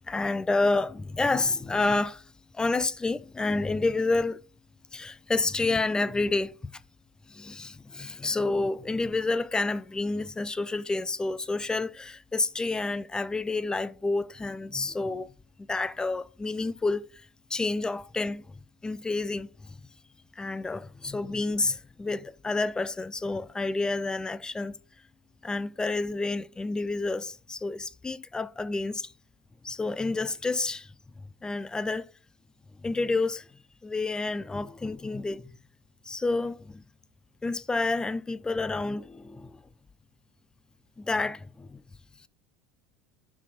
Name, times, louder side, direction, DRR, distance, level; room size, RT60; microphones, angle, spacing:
voice 1, 0.0-4.4 4.9-6.8 7.3-15.3 15.6-17.3 17.5-19.5 20.4-24.7 25.4-29.1 29.6-30.9 31.4-32.1 32.8-33.5 33.8-35.6 36.1-36.8 37.4-39.6 41.0-41.8, left 3 dB, 10° left, 0.4 m, -29 dB
11.5 x 4.1 x 4.3 m
figure-of-eight pair, 75°, 6 cm